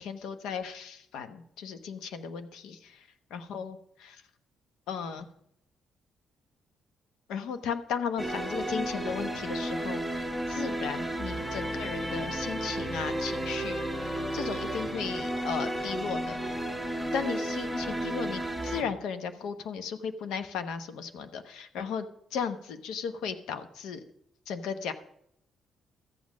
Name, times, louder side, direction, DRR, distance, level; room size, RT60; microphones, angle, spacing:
voice 1, 0.0-4.2 4.9-5.3 7.3-16.6 17.1-22.1 22.3-24.0 24.5-24.9, left 6 dB, 85° left, 9 dB, 1.0 m, -36 dB
sound 1, 8.2-18.8, right 1 dB, 5° left, 1.4 m, -33 dB
13.0 x 7.6 x 6.2 m, 0.72 s
cardioid pair, 90°, 0 cm